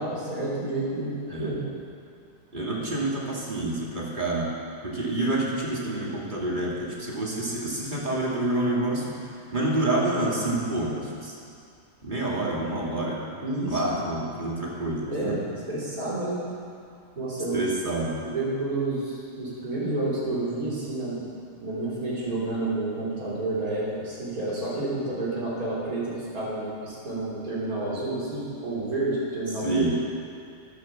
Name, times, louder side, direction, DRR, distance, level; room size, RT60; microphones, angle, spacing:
voice 1, 0.0-1.6 13.4-13.8 15.0-15.4 15.7-16.5 17.2-17.6 18.2-21.2 21.6-29.9, right 2 dB, 85° right, -7 dB, 3.9 m, -30 dB
voice 2, 2.5-4.5 4.8-11.3 12.0-13.2 13.7-15.4 17.5-18.2 29.6-29.9, right 2 dB, 35° right, -4 dB, 2.5 m, -28 dB
12.5 x 11.5 x 7.3 m, 2.3 s
omnidirectional pair, 1.5 m